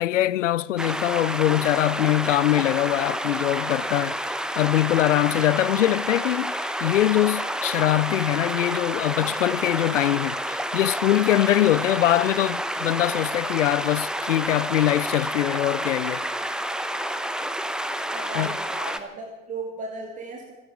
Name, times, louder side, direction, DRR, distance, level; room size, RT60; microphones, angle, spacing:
voice 1, 0.0-4.2 4.6-16.2 18.3-18.6, left 14 dB, 65° left, 0.7 m, -23 dB
sound 1, 0.8-19.0, right 1 dB, ahead, 1.0 m, -29 dB
voice 2, 18.1-20.5, right 3 dB, 20° right, 2.8 m, -36 dB
25.0 x 10.5 x 5.2 m
figure-of-eight pair, 95°, 40 cm